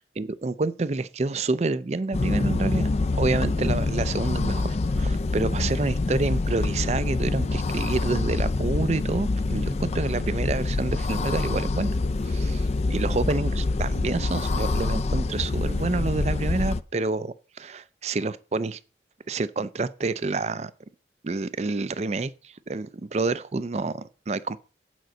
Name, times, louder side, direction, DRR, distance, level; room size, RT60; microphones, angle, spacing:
voice 1, 0.0-2.9 3.2-11.9 12.2-18.8 19.3-20.7 21.2-24.6, right 3 dB, 40° right, 0.4 m, -28 dB
sound 1, 2.1-16.8, left 3 dB, 35° left, 0.4 m, -26 dB
9.2 x 5.3 x 7.6 m
head